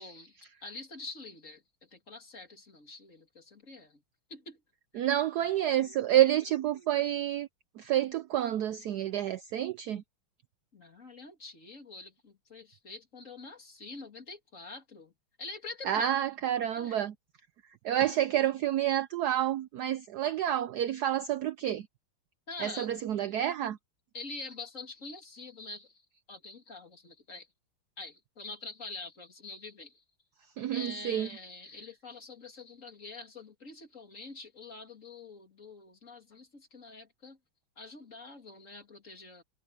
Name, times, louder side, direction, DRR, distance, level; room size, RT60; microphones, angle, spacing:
voice 1, 0.0-4.0 4.3-4.6 4.9-5.1 5.4-6.0 6.7-7.1 10.7-15.1 15.4-16.1 16.8-17.0 22.5-22.9 24.1-27.5 28.0-30.0 30.7-37.4 37.8-39.4, left 3 dB, 35° left, 3.1 m, -46 dB
voice 2, 4.9-7.5 7.8-10.0 15.8-17.1 17.6-21.9 22.6-23.8 30.6-31.3, right 12 dB, 80° right, 0.9 m, -29 dB
omnidirectional pair, 2.3 m